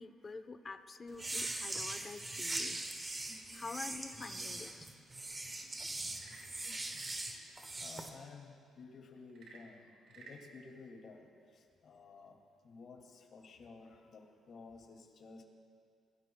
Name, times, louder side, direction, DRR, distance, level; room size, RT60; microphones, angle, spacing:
voice 1, 0.0-2.9 3.5-4.9, left 4 dB, 35° left, 8 dB, 0.9 m, -47 dB
sound 1, 1.1-8.1, right 2 dB, 25° right, 1.5 m, -41 dB
Frog / Percussion / Wood, 6.1-7.3 9.3-10.4, right 3 dB, 70° right, 3.9 m, -55 dB
voice 2, 7.8-11.3 11.5-12.4 12.6-15.4, left 4 dB, 60° left, 0 dB, 2.4 m, -54 dB
25.0 x 18.0 x 2.3 m, 2.3 s
cardioid pair, 90°, 0 cm